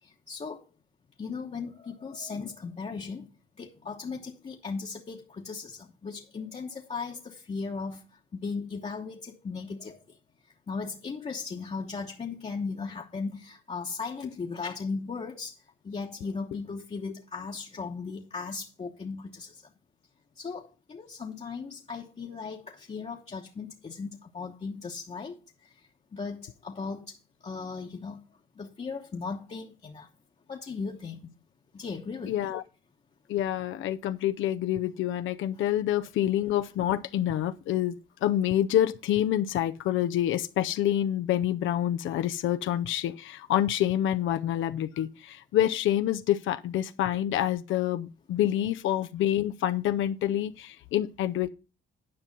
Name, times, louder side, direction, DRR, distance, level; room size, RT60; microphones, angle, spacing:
voice 1, 0.0-0.7 1.2-3.3 3.6-10.2 10.4-19.7 20.3-28.2 28.5-30.1 30.5-31.3 31.7-32.5 35.5-35.6 48.5-48.6, left 4 dB, 35° left, 1.0 m, -37 dB
voice 2, 32.3-32.6 33.3-38.0 38.2-51.5, left 12 dB, 80° left, 0.6 m, -27 dB
9.9 x 5.4 x 5.3 m
cardioid pair, 90°, 20 cm